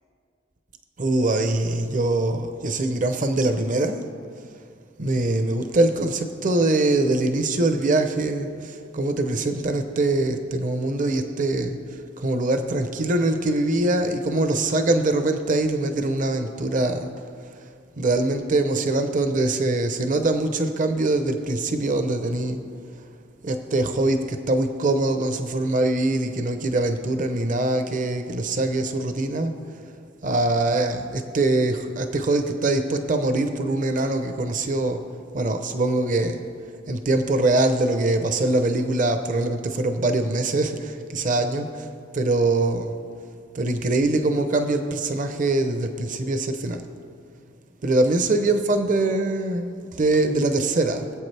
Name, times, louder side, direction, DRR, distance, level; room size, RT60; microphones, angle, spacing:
voice 1, 1.0-4.0 5.0-17.3 18.0-22.6 23.4-29.5 30.2-35.1 35.3-36.4 36.9-41.9 42.1-42.9 43.5-46.8 47.8-51.2, right 2 dB, 45° right, 7 dB, 0.7 m, -23 dB
22.0 x 8.0 x 3.4 m, 2.3 s
head